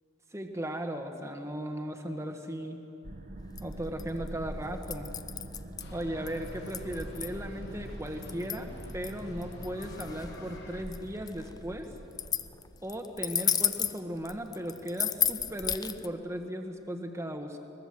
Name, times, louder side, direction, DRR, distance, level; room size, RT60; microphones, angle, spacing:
voice 1, 0.3-2.8 3.6-5.1 5.9-11.9 12.8-17.6, equal, 15° right, 4 dB, 1.4 m, -37 dB
sound 1, 3.0-13.0, right 1 dB, 40° right, 1.3 m, -44 dB
Dog collar, 3.4-16.1, left 8 dB, 20° left, 0.4 m, -34 dB
sound 2, 5.8-10.8, left 1 dB, 55° left, 2.6 m, -49 dB
22.0 x 20.5 x 7.4 m, 3.0 s
head